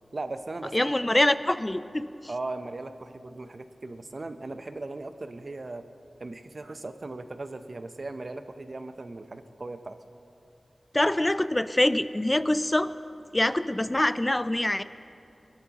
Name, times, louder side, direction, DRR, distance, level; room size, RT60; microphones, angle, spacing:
voice 1, 0.1-1.1 2.3-5.8 6.2-10.0, right 2 dB, 55° right, 9 dB, 0.7 m, -38 dB
voice 2, 0.7-2.1 10.9-12.9 13.3-14.8, left 1 dB, 20° left, 13 dB, 0.5 m, -24 dB
21.5 x 13.0 x 3.0 m, 2.7 s
wide cardioid pair, 60°, 0 cm